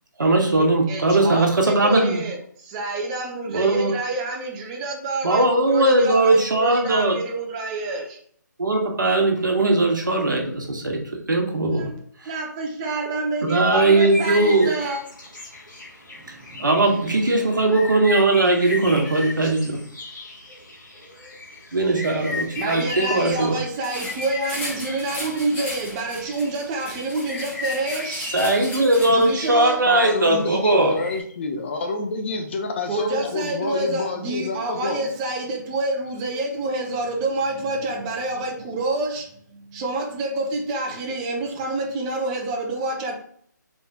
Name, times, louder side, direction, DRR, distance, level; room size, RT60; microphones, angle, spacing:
voice 1, 0.2-2.2 3.5-3.9 5.2-7.2 8.6-11.0 11.3-11.9 13.5-14.7 16.6-19.8 21.7-23.5 28.3-31.0, right 2 dB, 75° right, 2 dB, 1.2 m, -19 dB
voice 2, 0.9-8.2 11.7-11.9 12.3-15.0 16.1-17.0 22.5-28.3 29.0-29.8 32.9-43.1, right 2 dB, 20° right, 1 dB, 0.6 m, -28 dB
sound 1, 13.5-31.2, left 3 dB, 85° left, 1.7 m, -36 dB
sound 2, 23.8-29.5, left 1 dB, 15° left, 1.5 m, -36 dB
voice 3, 29.9-35.1, left 3 dB, 35° left, 5 dB, 0.6 m, -28 dB
4.1 x 3.3 x 2.9 m, 0.63 s
figure-of-eight pair, 145°, 10 cm